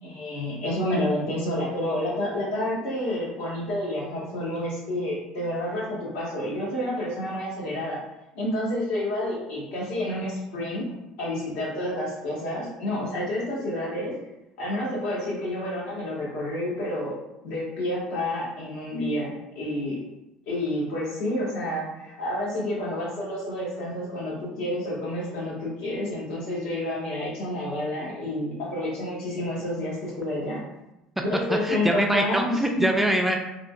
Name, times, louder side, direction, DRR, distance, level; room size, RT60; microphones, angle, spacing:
voice 1, 0.0-8.0 8.3-10.8 11.2-14.1 14.6-17.2 17.4-20.0 20.5-30.6 31.2-32.6, left 1 dB, 80° left, -6 dB, 1.5 m, -29 dB
voice 2, 31.5-33.4, right 1 dB, 10° right, 2 dB, 0.3 m, -23 dB
3.7 x 2.3 x 2.3 m, 0.91 s
supercardioid pair, 110°, 2 cm